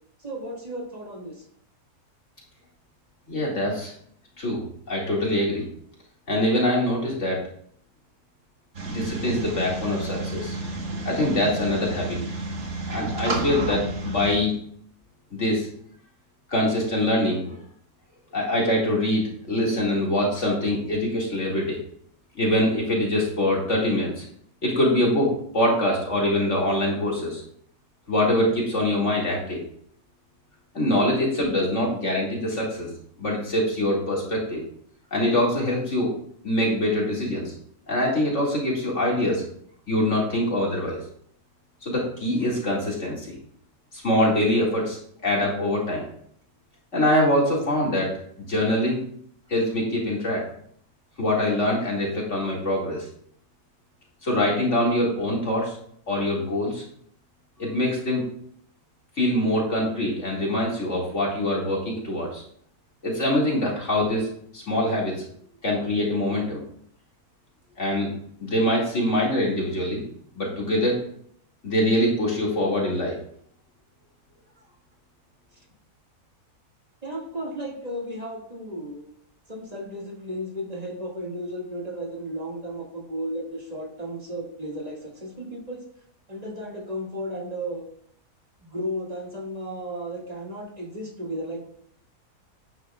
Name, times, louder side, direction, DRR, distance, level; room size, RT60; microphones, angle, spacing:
voice 1, 0.2-1.5 74.6-74.7 77.0-79.1 79.5-85.8 86.3-87.9 88.6-91.7, equal, 25° right, -2 dB, 2.0 m, -34 dB
voice 2, 3.3-3.9 4.4-4.6 4.9-5.6 6.3-7.4 8.9-10.6 11.0-12.2 12.9-14.5 15.3-15.7 16.5-17.6 18.3-21.8 22.4-24.2 24.6-27.4 28.1-29.6 30.7-32.9 33.2-34.6 35.1-36.1 36.4-37.5 37.9-39.4 39.9-41.0 41.8-43.4 43.9-46.0 46.9-48.1 48.4-49.0 49.5-50.4 51.2-53.1 54.2-55.8 56.1-56.8 57.6-58.2 59.2-62.4 63.0-64.3 64.5-65.2 65.6-66.6 67.8-68.1 68.4-70.0 70.4-71.0 71.6-73.2, left 1 dB, 50° left, -3 dB, 2.5 m, -24 dB
sound 1, 8.7-14.4, right 2 dB, 50° right, 1.6 m, -31 dB
11.0 x 9.2 x 2.3 m, 0.63 s
omnidirectional pair, 1.6 m